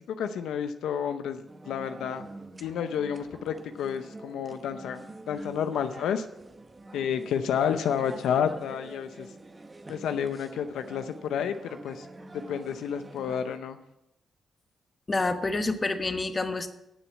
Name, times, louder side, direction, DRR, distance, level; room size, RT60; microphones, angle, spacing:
voice 1, 0.0-2.3 2.6-6.3 6.9-9.3 9.9-12.1 12.3-13.8, left 8 dB, 90° left, 8 dB, 0.7 m, -30 dB
sound 1, 1.5-13.6, right 2 dB, 25° right, 0.9 m, -46 dB
voice 2, 15.1-16.7, left 3 dB, 30° left, 8 dB, 1.2 m, -28 dB
10.5 x 7.1 x 7.4 m, 0.85 s
cardioid pair, 85°, 0 cm